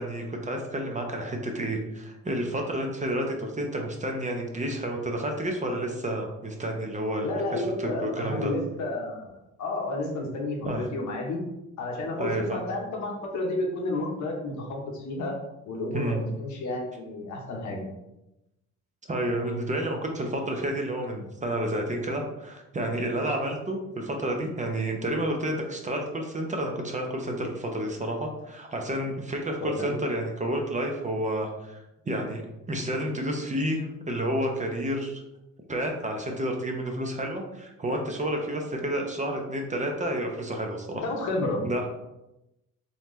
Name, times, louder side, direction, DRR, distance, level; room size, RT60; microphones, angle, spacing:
voice 1, 0.0-8.5 10.6-10.8 12.2-12.6 15.9-16.2 19.1-32.4 32.7-35.2 35.7-41.0 41.6-41.9, right 1 dB, 25° right, 2 dB, 0.7 m, -30 dB
voice 2, 7.2-9.3 9.6-11.4 11.8-15.3 15.6-17.9 29.6-30.0 41.0-41.7, left 2 dB, 70° left, 0 dB, 1.0 m, -31 dB
4.0 x 2.9 x 3.1 m, 0.92 s
cardioid pair, 90°, 30 cm